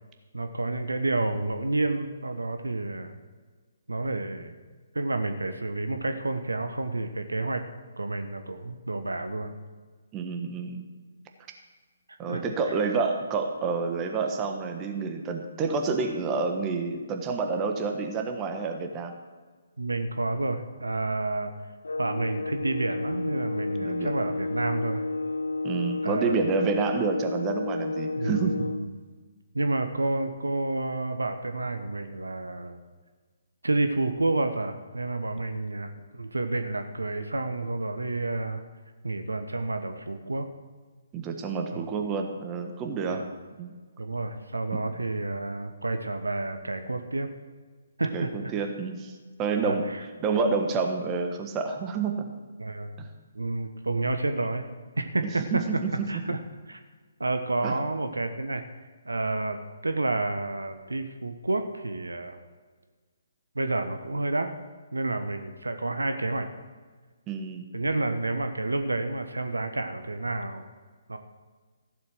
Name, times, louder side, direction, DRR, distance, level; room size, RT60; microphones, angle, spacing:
voice 1, 0.3-3.2 3.9-4.5 4.9-7.6 8.0-9.5 12.3-12.4 19.8-21.5 22.0-25.0 26.0-26.7 28.2-28.9 29.5-32.8 33.6-38.6 39.0-40.5 41.7-41.8 43.0-43.3 44.0-47.3 48.0-48.5 49.6-50.0 52.6-53.0 53.3-54.7 55.0-55.4 56.1-56.4 56.7-56.8 57.2-58.6 59.0-59.6 59.8-62.4 63.5-64.5 64.9-66.5 67.7-70.6 71.1-71.2, right 2 dB, 80° right, 7 dB, 1.1 m, -30 dB
voice 2, 10.1-10.9 12.2-19.1 23.8-24.1 25.6-28.6 41.1-43.3 43.6-43.7 44.7-44.8 48.1-49.1 49.4-49.9 50.2-52.3 53.0-53.1 55.5-56.1 57.6-57.8 67.3-67.6, right 4 dB, 20° right, 4 dB, 1.3 m, -29 dB
sound 1, 21.8-28.9, left 3 dB, 75° left, 0.7 m, -31 dB
15.0 x 7.8 x 6.2 m, 1.5 s
figure-of-eight pair, 135°, 0 cm